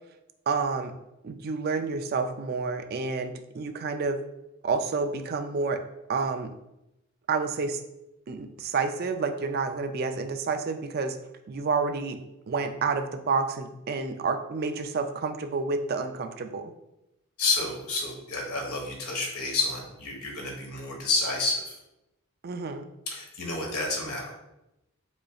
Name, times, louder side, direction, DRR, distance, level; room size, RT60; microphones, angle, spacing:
voice 1, 0.5-0.9 1.2-4.2 4.6-5.8 6.1-6.5 7.3-7.8 8.3-11.2 11.5-12.2 12.5-16.7 22.4-22.9, right 4 dB, 45° right, 7 dB, 0.3 m, -29 dB
voice 2, 17.4-21.8 23.1-24.3, left 3 dB, 90° left, 0 dB, 1.2 m, -30 dB
5.2 x 4.1 x 2.3 m, 0.90 s
head